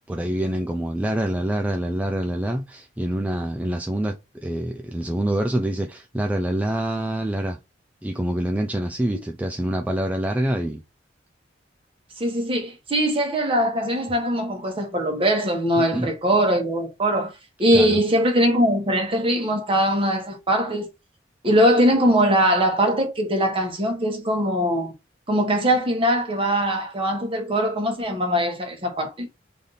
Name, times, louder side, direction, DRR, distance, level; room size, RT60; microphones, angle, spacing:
voice 1, 0.1-7.6 8.0-10.8 15.8-16.1 17.7-18.0, right 1 dB, 10° right, 0.3 m, -26 dB
voice 2, 12.2-17.3 17.6-20.9 21.4-24.9 25.3-29.3, equal, 30° right, 1.0 m, -21 dB
3.4 x 2.6 x 3.9 m
head